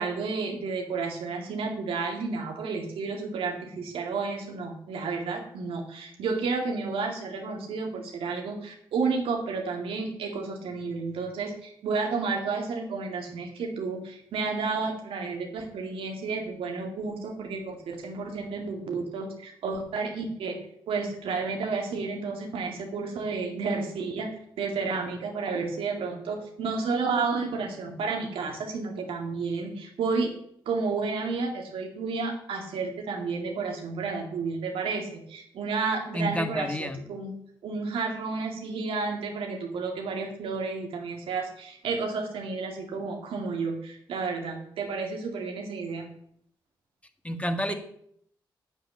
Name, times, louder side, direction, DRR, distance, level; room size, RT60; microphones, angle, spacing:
voice 1, 0.0-20.6 20.9-24.3 24.6-30.3 30.7-37.3 37.6-46.1 47.7-47.8, right 4 dB, 85° right, 2 dB, 2.2 m, -31 dB
voice 2, 36.1-37.0 47.2-47.7, equal, 15° left, 7 dB, 1.9 m, -29 dB
8.2 x 8.0 x 8.7 m, 0.69 s
supercardioid pair, 45°, 9 cm